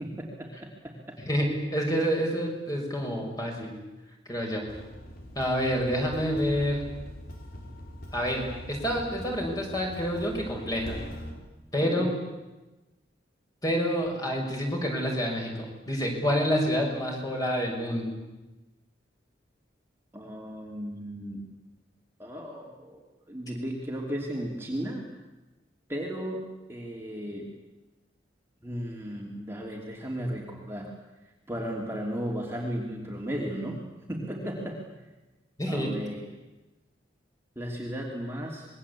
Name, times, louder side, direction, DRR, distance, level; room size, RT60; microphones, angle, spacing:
voice 1, 0.0-1.2 11.8-12.1 20.1-21.5 22.2-25.1 25.9-27.5 28.6-30.9 31.5-33.8 34.1-34.8 35.7-36.3 37.5-38.7, equal, 15° right, -1 dB, 3.0 m, -35 dB
voice 2, 1.3-3.7 4.3-4.6 5.3-6.8 8.1-11.0 11.7-12.1 13.6-18.1 35.6-35.9, equal, 20° left, 0 dB, 6.3 m, -28 dB
sound 1, 4.7-11.3, left 1 dB, 50° left, 4.8 m, -42 dB
26.5 x 21.5 x 8.6 m, 1.1 s
head